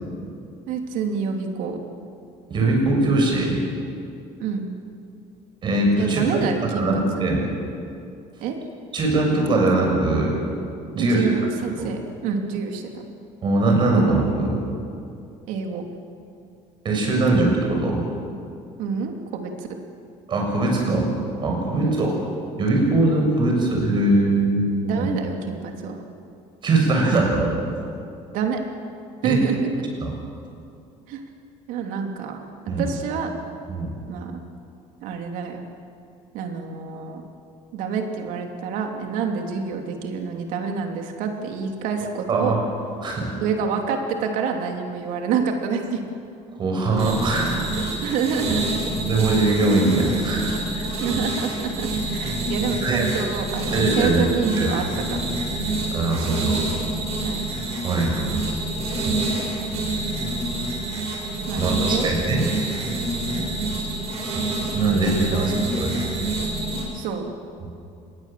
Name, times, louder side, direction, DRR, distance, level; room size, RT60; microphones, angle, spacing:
voice 1, 0.7-1.8 4.4-4.7 6.0-7.3 8.4-8.6 11.0-13.0 15.5-15.8 18.8-19.7 21.8-22.0 24.8-26.0 28.3-28.6 29.2-29.9 31.1-31.2 31.7-32.4 32.8-33.3 34.1-34.4 35.0-35.6 36.3-37.2 37.7-42.5 43.4-46.0 47.7-49.0 51.0-54.8 55.1-55.3 57.2-57.4 57.9-58.1 61.5-62.1 63.3-63.5 65.3-66.2 66.9-67.3, right 6 dB, 75° right, 3 dB, 3.1 m, -27 dB
voice 2, 2.5-3.6 5.6-6.2 6.7-7.4 8.9-10.4 10.9-11.2 11.8-11.9 13.4-14.5 16.8-18.0 20.3-21.1 21.4-22.1 22.6-24.6 25.0-25.1 26.6-27.5 29.2-29.4 30.0-30.1 32.7-32.8 33.7-33.9 42.3-42.6 43.0-43.3 46.6-47.8 49.0-50.5 50.7-50.9 52.8-53.0 53.7-54.2 54.6-54.7 55.9-56.6 57.8-58.4 61.6-62.4 64.7-66.0 67.6-67.7, right 2 dB, 35° right, 0 dB, 7.0 m, -21 dB
sound 1, 47.0-66.8, right 2 dB, 50° right, 7.3 m, -27 dB
27.0 x 20.5 x 7.6 m, 2.5 s
cardioid pair, 155°, 14 cm